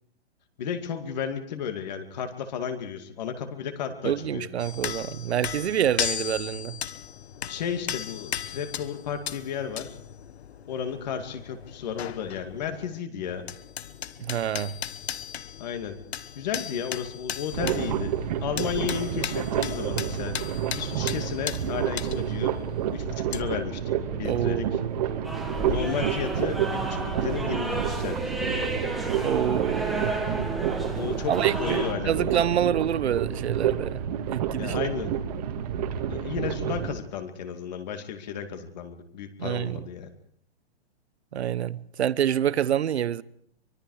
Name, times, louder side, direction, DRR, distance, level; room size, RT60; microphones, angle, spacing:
voice 1, 0.6-4.5 7.5-10.0 10.7-13.4 15.6-16.0 16.3-18.1 18.4-20.4 20.7-22.5 22.9-24.7 25.7-28.2 30.9-32.3 34.6-35.1 36.1-40.1, left 7 dB, 40° left, 2.5 m, -33 dB
voice 2, 4.0-6.8 14.2-14.8 24.2-25.4 29.2-30.2 31.3-34.0 34.3-34.8 39.4-39.8 41.3-43.2, right 10 dB, 80° right, 1.1 m, -27 dB
sound 1, 4.6-13.0 13.2-23.4, left 9 dB, 75° left, 1.2 m, -37 dB
sound 2, 17.5-36.9, right 9 dB, 40° right, 2.0 m, -29 dB
sound 3, 25.2-31.9, right 1 dB, ahead, 1.8 m, -32 dB
24.5 x 22.5 x 4.9 m
hypercardioid pair, 170°, 32 cm